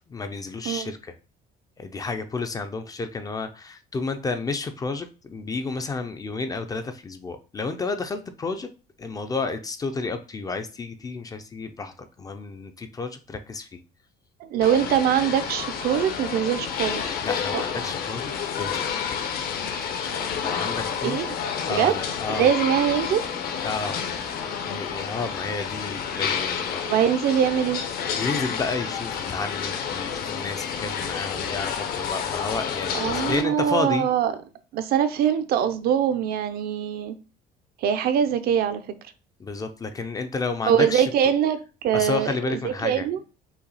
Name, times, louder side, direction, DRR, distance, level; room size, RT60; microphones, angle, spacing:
voice 1, 0.1-1.1 1.8-8.7 9.0-13.8 17.2-18.9 20.4-21.3 21.7-22.5 23.6-24.0 24.5-26.9 28.2-34.1 39.4-41.1 41.9-43.1, left 3 dB, 20° left, 0.5 m, -31 dB
voice 2, 14.4-17.2 17.5-17.6 21.0-21.4 21.7-21.9 22.3-23.2 26.8-27.8 32.9-34.3 34.7-37.2 37.8-38.8 40.7-43.2, right 9 dB, 55° right, 0.6 m, -23 dB
sound 1, 14.6-33.4, left 7 dB, 55° left, 0.9 m, -30 dB
5.6 x 2.3 x 4.0 m
cardioid pair, 145°, 18 cm